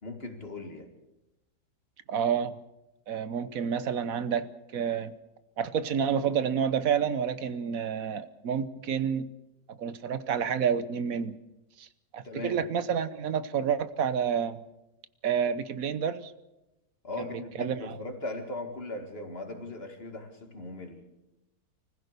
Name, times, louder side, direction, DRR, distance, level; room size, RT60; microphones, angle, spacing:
voice 1, 0.0-0.9 12.2-12.7 17.0-21.0, left 2 dB, 40° left, 5 dB, 2.5 m, -38 dB
voice 2, 2.1-2.5 3.1-5.1 5.6-9.2 9.7-11.4 11.8-11.9 12.1-14.6 15.2-16.3 17.2-17.3 17.6-18.0, right 7 dB, 65° right, 14 dB, 1.4 m, -29 dB
25.0 x 15.5 x 6.8 m, 0.96 s
omnidirectional pair, 1.6 m